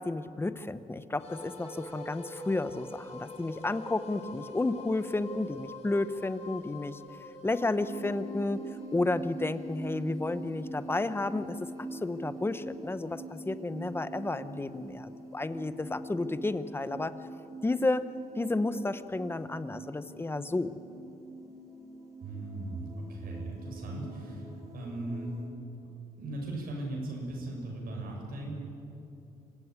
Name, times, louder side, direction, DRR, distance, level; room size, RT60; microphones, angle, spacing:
voice 1, 0.0-7.0 7.4-8.6 8.9-17.1 17.6-18.1 18.4-20.8, left 2 dB, 15° left, 12 dB, 0.9 m, -32 dB
sound 1, 1.2-12.4, left 1 dB, 45° left, 4.6 m, -46 dB
sound 2, 7.8-25.5, right 1 dB, 20° right, 4.8 m, -44 dB
voice 2, 22.2-24.5 24.7-25.3 26.2-28.5, right 2 dB, 70° right, 0 dB, 6.8 m, -38 dB
26.5 x 16.5 x 9.7 m, 2.8 s
cardioid pair, 120°, 16 cm